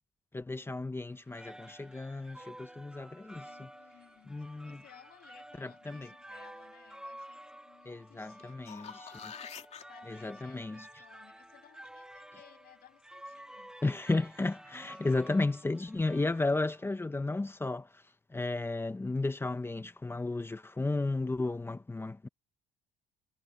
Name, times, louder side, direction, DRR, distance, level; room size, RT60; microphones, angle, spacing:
voice 1, 0.3-3.7 4.3-4.8 5.6-6.1 7.9-9.3 10.1-10.9 13.8-18.0 18.3-22.3, left 2 dB, 15° left, 1.1 m, -34 dB
sound 1, 1.1-17.0, right 1 dB, 5° right, 2.8 m, -51 dB
voice 2, 3.4-9.0 9.4-13.7 14.7-15.2, left 12 dB, 65° left, 7.1 m, -61 dB
sound 2, 8.4-9.8 14.6-14.7, left 7 dB, 40° left, 3.0 m, -46 dB
cardioid pair, 110°, 17 cm